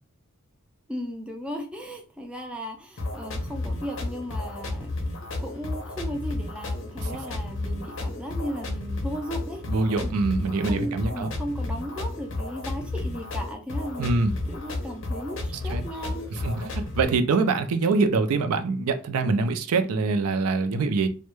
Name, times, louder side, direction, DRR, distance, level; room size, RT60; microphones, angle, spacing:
voice 1, 0.9-4.9 5.2-9.6 10.0-14.2 14.5-16.3, equal, 5° right, 0.3 m, -36 dB
sound 1, 3.0-17.0, left 2 dB, 55° left, 0.5 m, -32 dB
voice 2, 9.7-11.3 14.0-14.3 15.7-15.8 16.4-21.1, right 3 dB, 75° right, 0.4 m, -24 dB
2.2 x 2.1 x 3.0 m
head